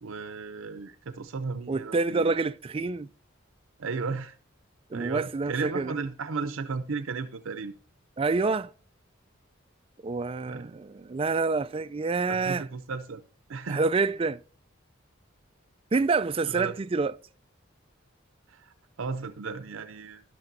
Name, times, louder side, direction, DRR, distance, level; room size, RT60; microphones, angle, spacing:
voice 1, 0.0-2.3 3.8-4.4 4.9-7.8 10.5-10.7 12.3-13.2 13.5-13.9 16.5-16.7 18.5-20.2, right 4 dB, 80° right, 0.6 m, -35 dB
voice 2, 1.7-3.1 4.9-5.9 8.2-8.7 10.0-12.6 13.7-14.4 15.9-17.1, right 4 dB, 25° right, 0.4 m, -27 dB
12.0 x 11.5 x 2.7 m
head